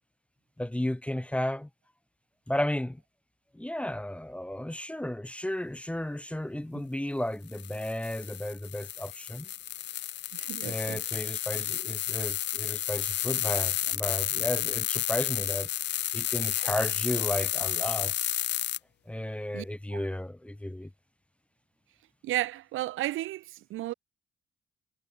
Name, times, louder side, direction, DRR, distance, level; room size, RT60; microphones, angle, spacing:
voice 1, 0.6-1.7 2.5-3.0 3.5-9.5 10.6-15.7 16.1-18.1 19.1-20.9, left 1 dB, 5° left, 1.2 m, -33 dB
sound 1, 7.5-18.8, left 12 dB, 60° left, 0.6 m, -31 dB
voice 2, 10.3-11.0 19.5-19.6 19.9-20.0 22.2-23.9, right 15 dB, 85° right, 1.5 m, -33 dB
cardioid pair, 90°, 20 cm